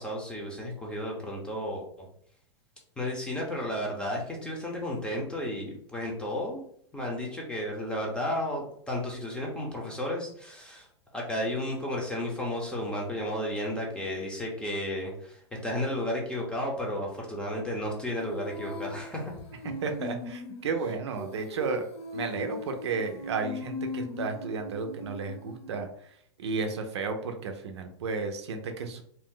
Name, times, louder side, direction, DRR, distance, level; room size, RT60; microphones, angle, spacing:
voice 1, 0.0-1.8 3.0-6.6 6.9-10.9 11.1-19.3 22.2-22.3, left 1 dB, 5° left, -2 dB, 0.7 m, -33 dB
Female singing, 18.2-25.9, left 2 dB, 80° left, 0.6 m, -40 dB
voice 2, 19.8-21.8 22.1-25.9 26.4-29.0, right 4 dB, 85° right, 5 dB, 0.6 m, -33 dB
2.7 x 2.0 x 3.7 m, 0.67 s
hypercardioid pair, 135°, 14 cm